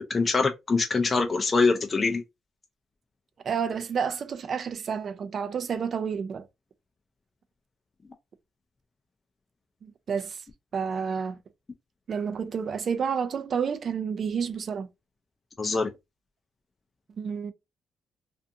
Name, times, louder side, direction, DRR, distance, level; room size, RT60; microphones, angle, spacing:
voice 1, 0.0-2.2 15.6-15.9, left 4 dB, 30° left, 0.4 m, -24 dB
voice 2, 3.4-6.5 9.8-10.4 10.7-11.4 12.1-14.9 17.2-17.5, right 6 dB, 50° right, 0.4 m, -30 dB
2.5 x 2.4 x 2.6 m
cardioid pair, 90°, 0 cm